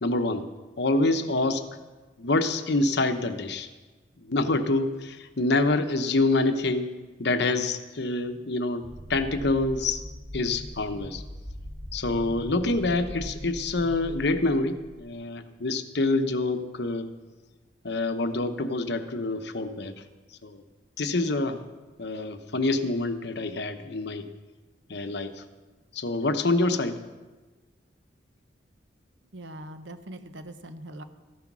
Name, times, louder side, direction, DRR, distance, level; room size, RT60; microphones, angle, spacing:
voice 1, 0.0-0.4 0.8-1.6 2.2-3.7 4.3-6.9 7.2-10.0 10.3-11.2 11.9-17.1 17.8-19.9 20.4-20.6 21.0-21.6 22.0-24.3 24.9-25.3 25.9-27.0, left 2 dB, 65° left, 8 dB, 1.0 m, -26 dB
sound 1, 8.8-15.1, equal, 15° right, 1.0 m, -40 dB
voice 2, 29.3-31.0, right 1 dB, 90° right, 9 dB, 1.0 m, -41 dB
14.5 x 9.5 x 6.1 m, 1.2 s
head